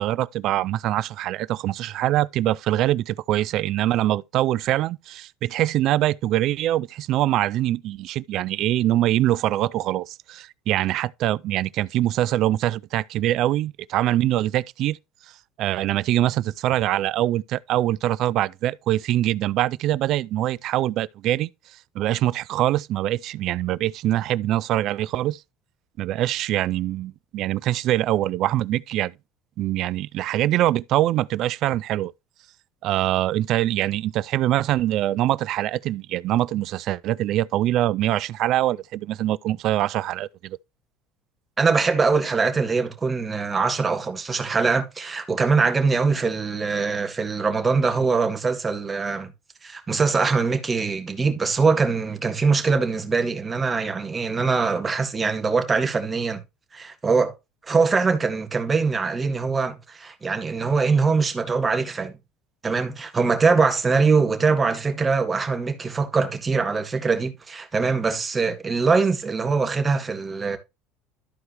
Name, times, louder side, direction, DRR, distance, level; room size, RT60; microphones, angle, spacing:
voice 1, 0.0-15.0 15.6-21.5 22.0-25.4 26.0-29.1 29.6-32.1 32.8-40.6, right 14 dB, 60° right, 0.3 m, -23 dB
voice 2, 41.6-49.3 49.6-56.4 56.7-57.3 57.7-62.1 62.6-70.6, right 4 dB, 25° right, 1.8 m, -22 dB
13.0 x 4.7 x 3.0 m
supercardioid pair, 85°, 0 cm